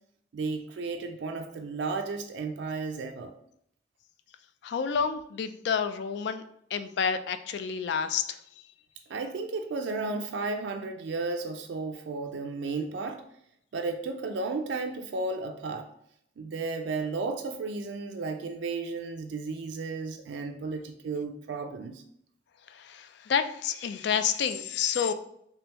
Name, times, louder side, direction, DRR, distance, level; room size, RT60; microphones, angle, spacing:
voice 1, 0.3-3.3 9.1-13.2 13.7-15.9 16.4-22.0, right 3 dB, 85° right, 4 dB, 0.4 m, -33 dB
voice 2, 4.6-6.4 6.7-8.4 22.7-25.1, left 7 dB, 75° left, 10 dB, 0.3 m, -29 dB
3.4 x 3.4 x 2.9 m, 0.71 s
head